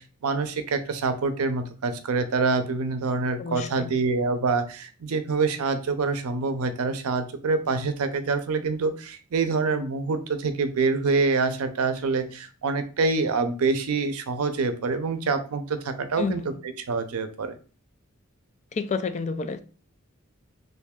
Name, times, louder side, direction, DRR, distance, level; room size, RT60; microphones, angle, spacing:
voice 1, 0.0-16.4 16.9-17.6, right 4 dB, 85° right, 0.5 m, -26 dB
voice 2, 3.4-3.9 16.2-16.6 18.7-19.6, left 4 dB, 35° left, 0.3 m, -30 dB
3.2 x 2.6 x 3.5 m
head